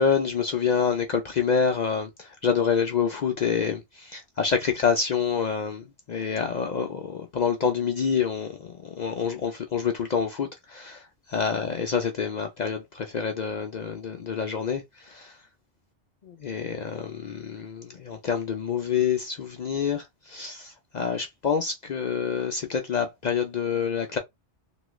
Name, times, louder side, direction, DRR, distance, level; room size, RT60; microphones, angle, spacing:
voice 1, 0.0-15.4 16.3-24.2, left 6 dB, 60° left, 0.4 m, -27 dB
3.0 x 2.3 x 3.0 m
omnidirectional pair, 1.2 m